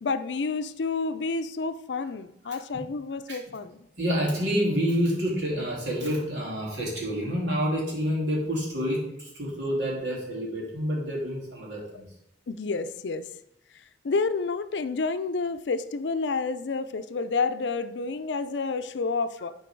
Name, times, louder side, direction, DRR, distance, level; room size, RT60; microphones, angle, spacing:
voice 1, 0.0-3.8 12.5-13.2 14.0-19.5, left 4 dB, 90° left, 0.5 m, -29 dB
voice 2, 4.0-12.1, equal, 90° right, 3.0 m, -28 dB
10.0 x 4.6 x 4.6 m
head